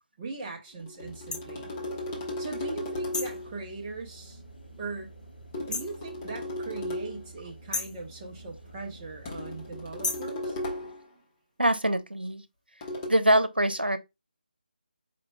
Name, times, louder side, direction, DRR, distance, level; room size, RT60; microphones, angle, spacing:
voice 1, 0.2-1.7 2.4-4.4 4.8-5.1 5.6-10.9, right 3 dB, 15° right, 0.8 m, -40 dB
sound 1, 0.8-3.6 5.5-7.3 9.3-11.1 12.8-13.1, left 1 dB, 20° left, 0.9 m, -36 dB
sound 2, 1.0-10.3, right 2 dB, 70° left, 2.2 m, -49 dB
sound 3, 1.3-1.5 3.1-3.4 5.7-6.0 7.7-8.0 10.0-10.3, left 3 dB, 50° left, 0.8 m, -32 dB
voice 2, 11.6-12.4 13.1-14.0, right 1 dB, 85° right, 0.8 m, -24 dB
5.0 x 4.4 x 2.2 m
figure-of-eight pair, 155°, 5 cm